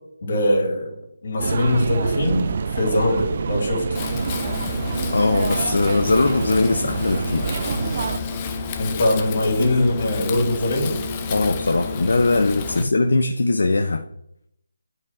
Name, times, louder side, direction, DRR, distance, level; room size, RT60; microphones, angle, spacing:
voice 1, 0.2-0.9 1.2-3.8 8.8-10.9 11.3-11.5, left 1 dB, 50° left, 3.0 m, -22 dB
sound 1, 1.4-8.2, right 5 dB, 40° right, 0.4 m, -26 dB
Wind, 3.9-12.8, left 4 dB, 20° left, 0.7 m, -30 dB
voice 2, 5.1-7.6 11.3-14.0, left 3 dB, 70° left, 0.7 m, -20 dB
8.4 x 4.9 x 4.4 m
figure-of-eight pair, 165°, 0 cm